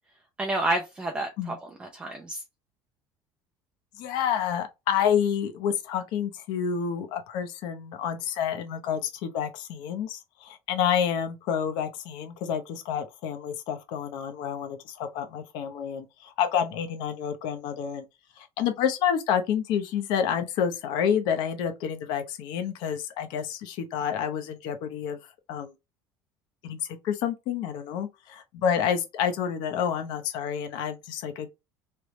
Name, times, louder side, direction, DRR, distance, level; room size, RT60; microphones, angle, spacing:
voice 1, 0.4-2.4, right 1 dB, 10° right, 0.4 m, -30 dB
voice 2, 4.0-18.0 18.4-25.2 25.5-25.7 26.6-26.8 27.0-31.5, left 8 dB, 55° left, 0.7 m, -29 dB
3.3 x 3.1 x 2.9 m
cardioid pair, 175°, 9 cm